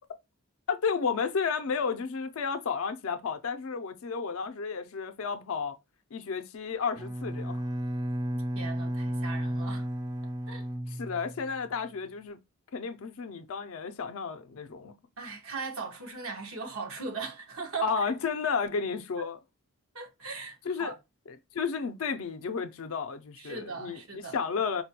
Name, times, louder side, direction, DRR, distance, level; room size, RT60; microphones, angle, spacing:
voice 1, 0.7-5.8 6.1-7.7 10.9-12.4 12.7-14.9 17.8-19.4 20.6-20.9 21.5-24.8, left 5 dB, 75° left, 0.4 m, -32 dB
Bowed string instrument, 6.9-11.7, equal, 20° right, 0.4 m, -33 dB
voice 2, 8.5-9.9 10.5-10.6 15.2-17.9 19.2-19.3 19.9-20.9 23.4-24.4, right 4 dB, 85° right, 1.1 m, -38 dB
4.3 x 2.2 x 2.7 m
head